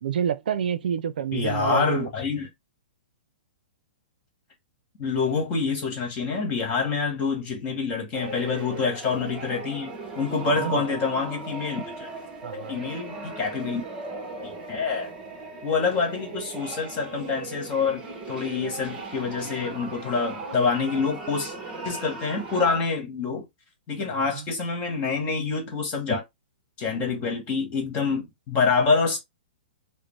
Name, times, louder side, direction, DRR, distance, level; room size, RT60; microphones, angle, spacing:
voice 1, 0.0-2.1 10.5-11.0 12.4-12.8 24.2-24.5, right 9 dB, 70° right, 0.5 m, -28 dB
voice 2, 1.3-2.5 5.0-12.1 12.7-13.8 14.4-15.1 15.6-18.0 18.3-21.5 21.8-23.4 23.9-26.2 26.8-29.2, left 4 dB, 25° left, 1.5 m, -26 dB
sound 1, 8.1-22.8, right 3 dB, 20° right, 1.0 m, -38 dB
5.0 x 2.1 x 3.2 m
hypercardioid pair, 155°, 5 cm